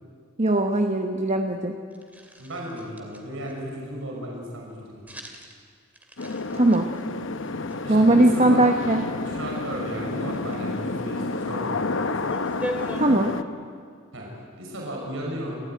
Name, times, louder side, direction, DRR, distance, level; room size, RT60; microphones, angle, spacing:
voice 1, 0.4-1.7 6.5-6.9 7.9-9.0 13.0-13.4, right 1 dB, 35° right, 4 dB, 1.1 m, -20 dB
sound 1, 1.9-3.6 5.1-5.6 5.9-7.8 8.4-8.6 10.2-10.6 11.5-11.6 11.8-13.1, equal, 10° right, 2.5 m, -38 dB
voice 2, 2.4-5.0 7.8-8.7 9.2-11.9 12.3-12.4 14.1-15.5, right 1 dB, 70° right, -2 dB, 5.9 m, -35 dB
sound 2, 6.2-13.4, left 3 dB, 65° left, 0.9 m, -29 dB
30.0 x 14.5 x 9.3 m, 2.1 s
head